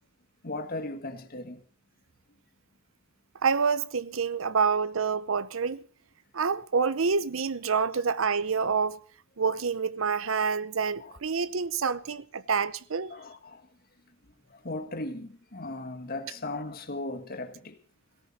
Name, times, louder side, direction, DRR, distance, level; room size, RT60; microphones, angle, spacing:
voice 1, 0.4-1.6 11.0-11.2 13.1-13.7 14.5-17.8, left 2 dB, 50° left, 1.7 m, -37 dB
voice 2, 3.4-5.8 6.3-9.0 9.4-13.1, right 5 dB, 80° right, 0.7 m, -27 dB
17.5 x 17.5 x 4.3 m
head